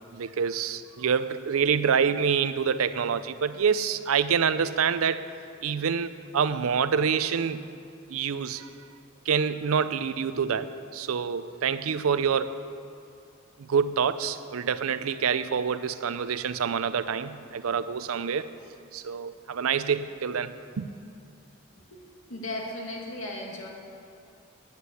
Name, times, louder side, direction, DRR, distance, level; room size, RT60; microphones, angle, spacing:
voice 1, 0.1-5.2 5.6-7.6 8.1-8.7 9.3-12.6 13.7-18.5 18.9-20.9, right 6 dB, 90° right, 13 dB, 0.5 m, -26 dB
voice 2, 22.3-23.7, left 1 dB, 70° left, -2 dB, 2.2 m, -36 dB
9.6 x 8.2 x 8.3 m, 2.4 s
head